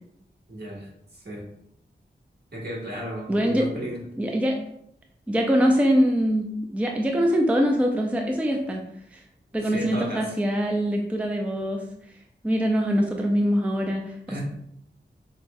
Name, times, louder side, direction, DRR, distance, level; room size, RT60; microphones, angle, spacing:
voice 1, 0.5-1.5 2.5-4.0 9.6-10.4 14.3-14.4, equal, 60° right, -4 dB, 1.3 m, -35 dB
voice 2, 3.3-3.7 4.2-4.6 5.3-8.8 9.5-11.8 12.4-14.4, equal, 5° right, 2 dB, 0.4 m, -23 dB
5.5 x 2.1 x 2.2 m, 0.73 s
wide cardioid pair, 50°, 19 cm